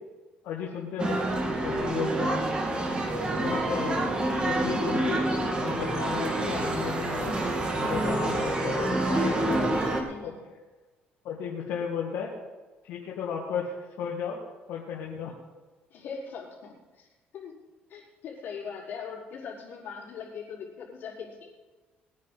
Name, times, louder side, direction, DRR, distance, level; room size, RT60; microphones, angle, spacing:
voice 1, 0.4-1.2 1.6-2.3 3.4-4.1 4.4-5.2 5.6-7.4 7.8-9.5 10.2-10.3 11.2-12.3 12.8-14.4 14.7-15.3, left 7 dB, 85° left, -3 dB, 2.1 m, -34 dB
sound 1, 1.0-10.0, right 1 dB, 25° right, 2.1 m, -27 dB
voice 2, 1.7-2.0 9.5-9.7 10.0-10.4 15.9-17.1 17.3-17.6 17.9-21.5, left 6 dB, 65° left, -5 dB, 4.5 m, -41 dB
20.5 x 9.8 x 4.1 m, 1.3 s
cardioid pair, 120°, 4 cm